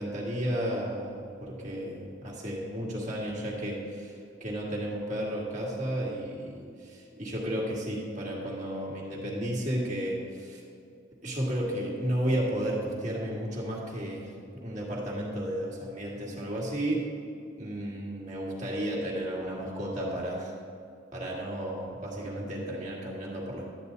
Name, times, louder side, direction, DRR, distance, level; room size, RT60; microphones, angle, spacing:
voice 1, 0.0-10.6 11.2-17.1 17.6-20.5 21.1-23.7, right 1 dB, 40° right, -4 dB, 2.0 m, -33 dB
12.0 x 8.8 x 4.0 m, 2.4 s
head